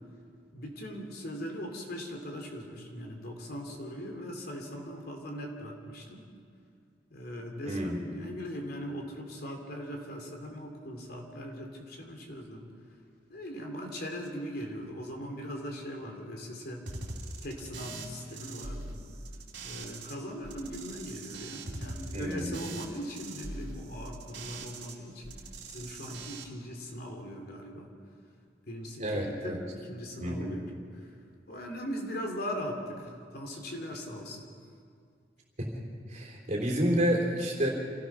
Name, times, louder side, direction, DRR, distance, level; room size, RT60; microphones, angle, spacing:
voice 1, 0.5-6.3 7.1-12.7 13.3-16.8 17.4-19.0 19.6-25.4 25.7-27.9 28.7-31.1 31.5-34.4, equal, 60° left, 2 dB, 3.1 m, -40 dB
sound 1, 16.9-20.1 20.4-24.9 25.2-26.4, right 3 dB, 75° right, 2.7 m, -42 dB
voice 2, 22.1-22.6 29.0-29.6 30.2-30.6 35.7-35.8 36.1-37.7, equal, 40° right, -2 dB, 3.7 m, -29 dB
27.0 x 16.0 x 6.1 m, 2.2 s
head